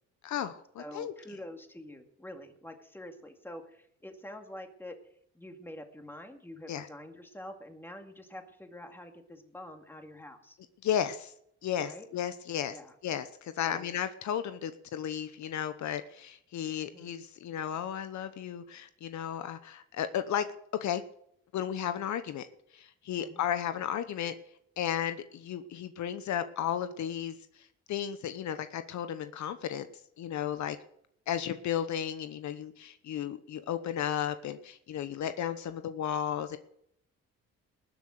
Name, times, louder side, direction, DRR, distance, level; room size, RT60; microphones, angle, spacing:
voice 1, 0.2-1.1 6.7-6.9 10.8-11.3 11.6-12.8 13.0-20.5 20.8-21.0 21.5-22.5 22.7-24.3 24.8-27.4 27.9-29.9 30.2-30.8 31.3-36.6, left 9 dB, 70° left, 11 dB, 0.9 m, -34 dB
voice 2, 0.8-5.0 5.3-10.6 11.8-12.1 12.7-12.9 13.6-13.9 16.7-17.1 23.2-23.5, left 1 dB, 5° left, 4 dB, 2.3 m, -46 dB
19.5 x 7.0 x 6.5 m, 0.73 s
cardioid pair, 90°, 30 cm